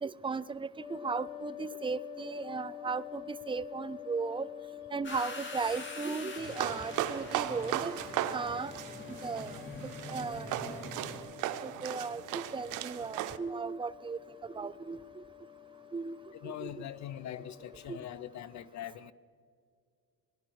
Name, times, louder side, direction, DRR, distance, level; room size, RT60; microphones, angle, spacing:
voice 1, 0.0-4.5 4.9-8.0 8.3-8.7 9.2-9.5 10.1-10.8 11.6-14.2 14.5-15.2 15.9-16.1 16.4-16.7 17.9-18.0, right 4 dB, 20° right, 0.4 m, -36 dB
sound 1, 0.8-18.1, left 12 dB, 20° left, 1.3 m, -48 dB
sound 2, 5.0-11.2, left 2 dB, 40° left, 2.1 m, -44 dB
sound 3, 6.4-13.4, right 13 dB, 90° right, 0.6 m, -37 dB
voice 2, 16.3-19.1, left 11 dB, 65° left, 0.7 m, -42 dB
19.0 x 11.5 x 4.7 m
cardioid pair, 90°, 30 cm